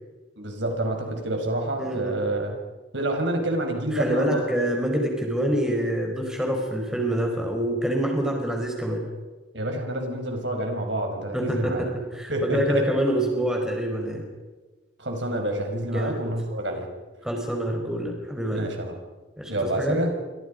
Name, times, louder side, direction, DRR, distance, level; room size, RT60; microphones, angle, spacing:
voice 1, 0.4-2.6 2.9-4.4 9.5-11.8 12.3-12.9 15.0-16.9 18.5-19.0 19.5-20.2, right 1 dB, 70° right, 3 dB, 5.3 m, -28 dB
voice 2, 1.8-2.2 3.9-9.1 11.3-14.3 15.9-16.2 17.2-18.7 19.4-20.0, right 1 dB, 5° right, 1 dB, 4.7 m, -26 dB
30.0 x 25.5 x 5.3 m, 1.3 s
head